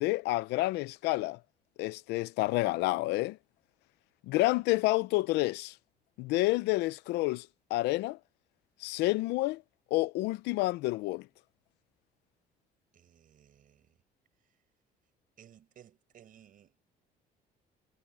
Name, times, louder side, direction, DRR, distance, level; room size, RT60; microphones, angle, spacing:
voice 1, 0.0-1.4 1.8-3.4 4.3-5.7 6.2-8.2 8.8-9.6 9.9-11.3, left 20 dB, 90° left, 0.7 m, -29 dB
voice 2, 12.9-14.0 15.4-16.8, right 10 dB, 55° right, 5.2 m, -58 dB
cardioid pair, 110°, 17 cm